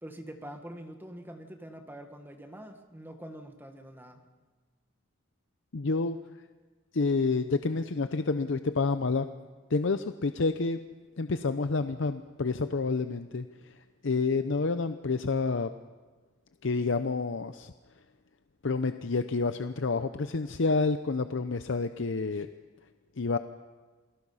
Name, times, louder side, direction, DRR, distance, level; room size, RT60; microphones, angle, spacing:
voice 1, 0.0-4.3, right 1 dB, 10° right, 5 dB, 1.6 m, -45 dB
voice 2, 5.7-6.2 6.9-9.3 9.7-10.8 11.2-13.5 14.0-15.7 16.6-17.7 18.6-22.5 23.2-23.4, left 4 dB, 65° left, 10 dB, 0.7 m, -28 dB
28.5 x 19.0 x 5.6 m, 1.4 s
head